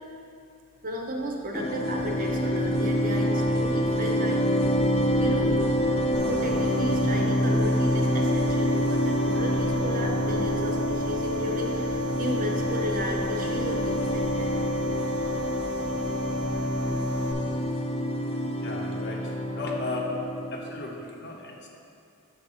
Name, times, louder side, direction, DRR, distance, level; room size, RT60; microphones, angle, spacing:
voice 1, 0.8-4.4 5.2-5.8 6.3-14.5, equal, 40° right, 0 dB, 0.8 m, -33 dB
sound 1, 1.5-21.1, equal, 25° left, 0.4 m, -27 dB
sound 2, 1.8-17.7, equal, 75° left, 0.9 m, -43 dB
sound 3, 6.1-17.3, left 2 dB, 85° right, 1.0 m, -34 dB
voice 2, 18.6-20.1 20.5-21.7, left 3 dB, 50° left, 0 dB, 0.9 m, -36 dB
7.6 x 4.0 x 5.5 m, 2.4 s
head